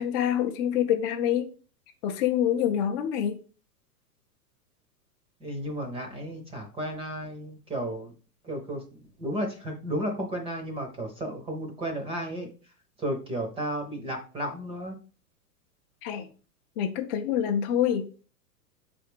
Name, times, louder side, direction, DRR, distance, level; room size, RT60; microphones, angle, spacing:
voice 1, 0.0-1.5 2.0-3.4 16.0-16.3 16.8-18.2, left 10 dB, 35° left, 3 dB, 0.5 m, -26 dB
voice 2, 5.4-8.1 8.4-12.5 13.0-14.9, right 1 dB, 10° right, 3 dB, 0.7 m, -33 dB
5.6 x 3.5 x 5.0 m, 0.37 s
hypercardioid pair, 140°, 48 cm